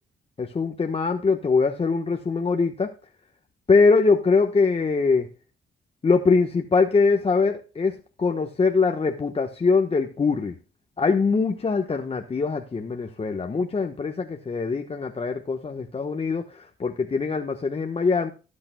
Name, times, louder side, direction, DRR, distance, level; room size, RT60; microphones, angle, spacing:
voice 1, 0.4-2.9 3.7-5.3 6.0-10.5 11.0-18.3, left 4 dB, 30° left, 1.2 m, -23 dB
17.0 x 8.7 x 2.3 m
cardioid pair, 90°, 20 cm